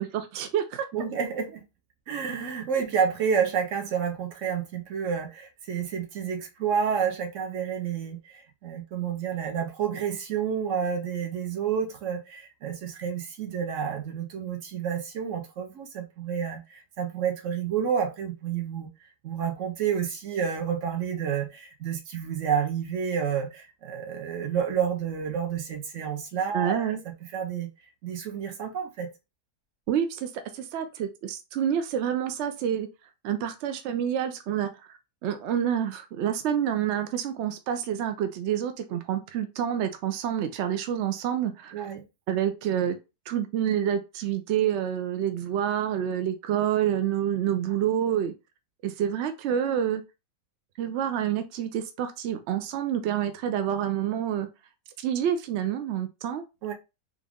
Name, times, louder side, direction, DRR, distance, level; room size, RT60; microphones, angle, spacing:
voice 1, 0.0-0.9 26.5-27.0 29.9-32.9 33.2-41.9 42.3-43.0 43.3-48.3 48.8-50.0 50.8-54.5 55.0-56.4, right 9 dB, 75° right, 0.6 m, -28 dB
voice 2, 0.9-1.6 2.1-18.9 19.2-27.0 27.3-27.7 28.0-29.1 41.7-42.0 56.6-56.7, right 7 dB, 60° right, 1.0 m, -29 dB
3.6 x 2.4 x 3.5 m
omnidirectional pair, 1.7 m